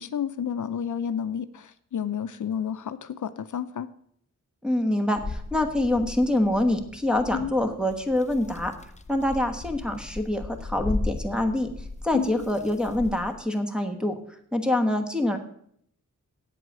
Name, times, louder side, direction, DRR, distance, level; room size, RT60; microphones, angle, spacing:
voice 1, 0.0-3.9 7.3-7.5 12.1-12.4, left 8 dB, 70° left, 12 dB, 0.6 m, -31 dB
voice 2, 4.6-8.7 9.1-11.7 12.0-14.1 14.5-15.4, left 1 dB, 5° right, 5 dB, 1.3 m, -25 dB
sound 1, 5.2-13.4, left 2 dB, 20° left, 0.7 m, -37 dB
8.5 x 8.0 x 7.3 m, 0.66 s
wide cardioid pair, 115°, 31 cm